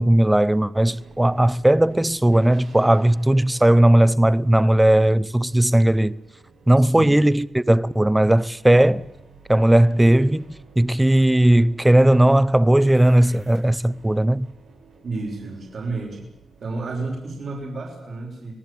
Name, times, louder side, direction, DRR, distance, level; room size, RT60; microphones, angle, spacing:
voice 1, 0.0-6.1 6.7-9.0 9.5-14.5, right 1 dB, 10° right, 0.8 m, -17 dB
sound 1, 0.7-17.7, right 4 dB, 80° right, 8.0 m, -51 dB
voice 2, 6.8-7.2 15.0-16.3 16.6-18.5, right 3 dB, 60° right, 6.0 m, -31 dB
25.5 x 19.0 x 8.6 m
cardioid pair, 90°, 0 cm